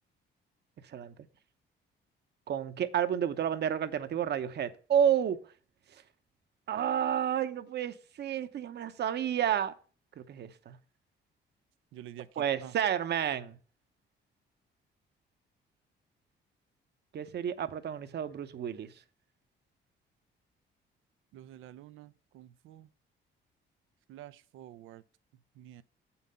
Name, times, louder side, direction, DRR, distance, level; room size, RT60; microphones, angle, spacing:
voice 1, 2.5-5.4 6.7-9.7 10.2-10.8 12.4-13.6 17.1-18.9, right 9 dB, 55° right, 0.8 m, -30 dB
voice 2, 11.9-12.8 21.3-22.9 24.1-25.0 25.6-25.8, right 12 dB, 90° right, 0.5 m, -49 dB
7.4 x 5.7 x 5.5 m
cardioid pair, 90°, 20 cm